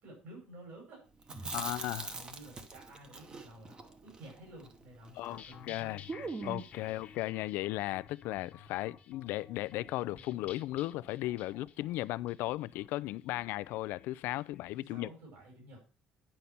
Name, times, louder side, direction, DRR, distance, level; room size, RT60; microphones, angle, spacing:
voice 1, 0.0-1.8 2.1-5.9 6.8-7.0 14.9-15.8, right 1 dB, 65° right, 5.3 m, -52 dB
Chewing mastication, 1.2-5.4 5.7-5.8 6.1-6.8, right 3 dB, 25° right, 1.0 m, -42 dB
voice 2, 1.5-2.2 5.2-6.0 6.4-15.1, left 17 dB, 85° left, 0.4 m, -36 dB
sound 1, 5.2-14.7, left 7 dB, 40° left, 1.0 m, -53 dB
10.0 x 5.4 x 5.8 m
cardioid pair, 150°, 3 cm